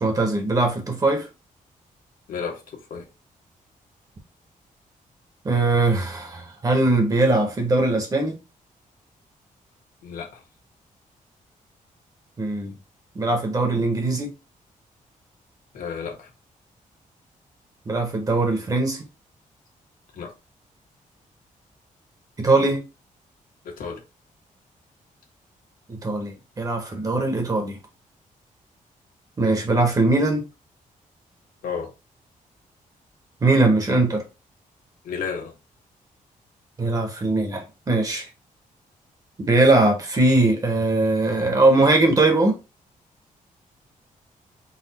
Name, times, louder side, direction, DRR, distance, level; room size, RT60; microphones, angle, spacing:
voice 1, 0.0-1.3 5.4-8.4 12.4-12.7 13.1-14.3 17.9-19.0 22.4-22.8 25.9-27.8 29.4-30.4 33.4-34.2 36.8-38.3 39.4-42.5, right 2 dB, 25° right, 0.9 m, -21 dB
voice 2, 2.3-2.6 2.9-3.1 10.0-10.3 15.7-16.3 20.2-20.3 23.6-24.0 31.6-31.9 35.0-35.5, left 6 dB, 80° left, 1.3 m, -31 dB
4.0 x 2.4 x 4.0 m
wide cardioid pair, 175°, 14 cm